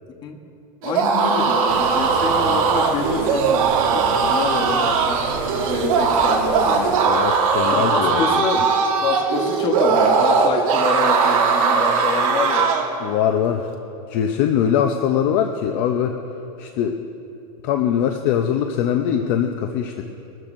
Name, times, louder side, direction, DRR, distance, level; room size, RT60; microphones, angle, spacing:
voice 1, 0.8-5.3 5.6-7.1 7.7-8.7 9.0-12.7 14.5-14.6, left 5 dB, 20° left, 4 dB, 1.0 m, -27 dB
Scream in pain, 0.8-12.9, right 5 dB, 65° right, 1.7 m, -19 dB
sound 1, 1.7-7.0, right 6 dB, 40° right, 0.8 m, -33 dB
voice 2, 7.0-8.4 13.0-13.7 14.1-16.2 16.6-17.0 17.6-20.0, left 9 dB, 40° left, 5 dB, 0.6 m, -22 dB
21.5 x 13.5 x 2.6 m, 2.8 s
supercardioid pair, 165°, 19 cm